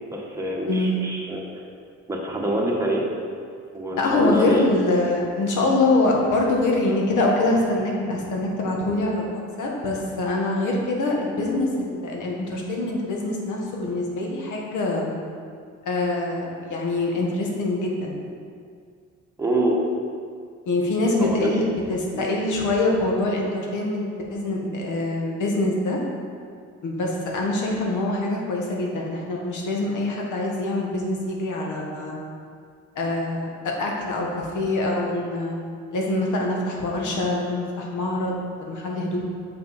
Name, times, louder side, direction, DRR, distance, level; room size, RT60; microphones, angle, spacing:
voice 1, 0.1-1.4 2.1-3.1 3.7-4.7 19.4-19.8 21.2-21.7 22.1-22.3, right 1 dB, 10° right, -3 dB, 1.2 m, -25 dB
voice 2, 0.7-1.0 4.0-15.1 15.8-18.2 20.7-24.0 24.3-26.0 26.8-32.1 32.9-35.6 35.9-39.2, left 2 dB, 80° left, -1 dB, 1.4 m, -24 dB
6.8 x 5.3 x 4.1 m, 2.2 s
cardioid pair, 90°, 30 cm